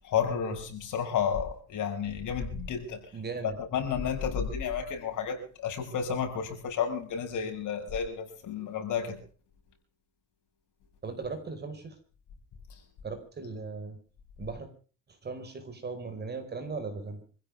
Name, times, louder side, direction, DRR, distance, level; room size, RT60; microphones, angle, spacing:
voice 1, 0.0-3.0 3.4-9.2, left 7 dB, 60° left, 4 dB, 6.6 m, -31 dB
voice 2, 3.1-3.6 11.0-12.0 13.0-14.0 14.4-14.7 15.1-17.2, right 4 dB, 30° right, 8 dB, 4.7 m, -38 dB
26.0 x 16.0 x 3.4 m, 0.39 s
cardioid pair, 155°, 34 cm